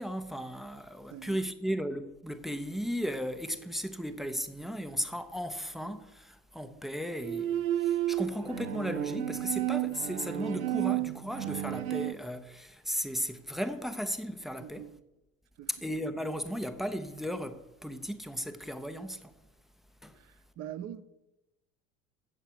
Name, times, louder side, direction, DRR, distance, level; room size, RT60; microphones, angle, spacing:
voice 1, 0.0-14.9 15.7-19.3 20.0-20.2, equal, ahead, 0.4 m, -36 dB
voice 2, 1.1-1.4 14.6-15.0 15.6-15.7 20.1-21.0, right 11 dB, 35° right, 0.7 m, -43 dB
Bowed string instrument, 7.1-12.1, right 13 dB, 75° right, 0.5 m, -32 dB
8.1 x 7.2 x 5.9 m
figure-of-eight pair, 75°, 43 cm